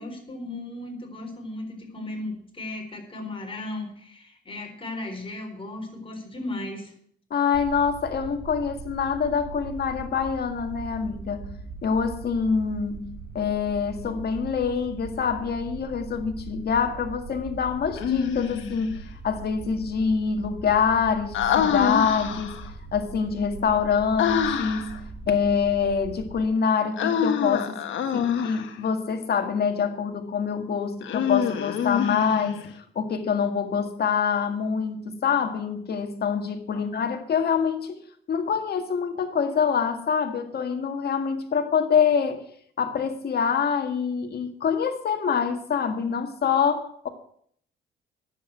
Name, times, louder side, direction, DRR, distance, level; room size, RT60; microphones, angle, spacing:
voice 1, 0.0-6.9 36.7-36.8, left 2 dB, 25° left, 2 dB, 4.2 m, -36 dB
voice 2, 7.3-27.8 28.1-38.0 38.3-42.4 42.8-47.1, left 6 dB, 55° left, 5 dB, 1.9 m, -25 dB
sound 1, 7.5-26.4, right 4 dB, 50° right, 2.3 m, -41 dB
Human voice, 18.0-18.8 21.3-22.7 24.2-25.0 27.0-28.8 31.0-32.6, left 8 dB, 75° left, 1.5 m, -26 dB
10.0 x 8.1 x 8.9 m, 0.64 s
cardioid pair, 90°, 20 cm